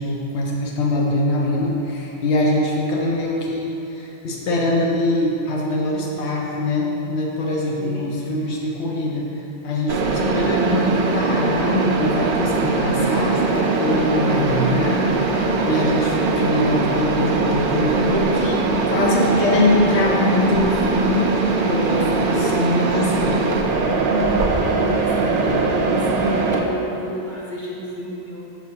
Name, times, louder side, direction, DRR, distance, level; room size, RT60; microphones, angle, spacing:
voice 1, 0.0-23.4, left 1 dB, 80° left, -2 dB, 1.0 m, -23 dB
voice 2, 7.8-8.1 21.9-22.6 24.6-28.4, equal, 50° left, -6 dB, 0.9 m, -32 dB
Mechanisms, 9.9-26.6, right 3 dB, 60° right, 0.7 m, -21 dB
6.1 x 6.1 x 2.8 m, 2.9 s
omnidirectional pair, 1.1 m